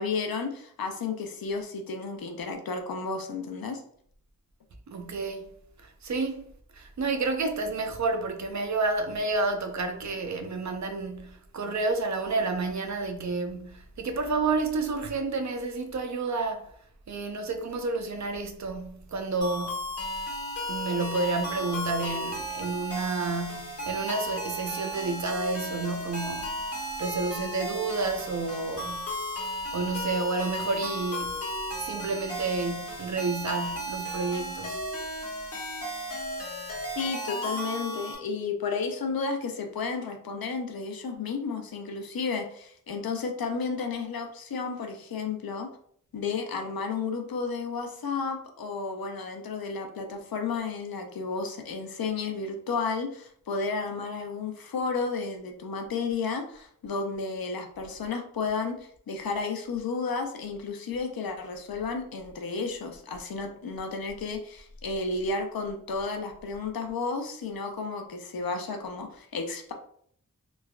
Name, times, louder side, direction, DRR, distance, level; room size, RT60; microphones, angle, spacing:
voice 1, 0.0-3.8 37.0-45.7 46.1-69.7, left 4 dB, 85° left, 0.5 m, -32 dB
voice 2, 4.9-5.5 5.8-16.7 17.1-20.0 20.7-29.2 29.7-34.9, right 3 dB, 55° right, 0.5 m, -30 dB
sound 1, 19.4-38.2, equal, 45° left, 1.0 m, -34 dB
3.1 x 2.2 x 2.3 m
wide cardioid pair, 70°, 35 cm